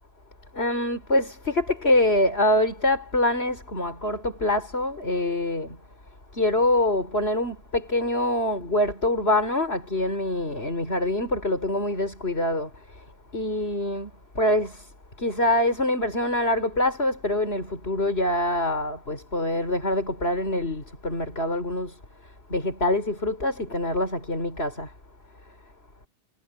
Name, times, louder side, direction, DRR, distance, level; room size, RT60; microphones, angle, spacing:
voice 1, 0.5-5.8 6.3-13.0 13.3-14.9 15.2-22.0 22.5-24.9, left 1 dB, 60° left, 4.5 m, -25 dB
omnidirectional pair, 1.2 m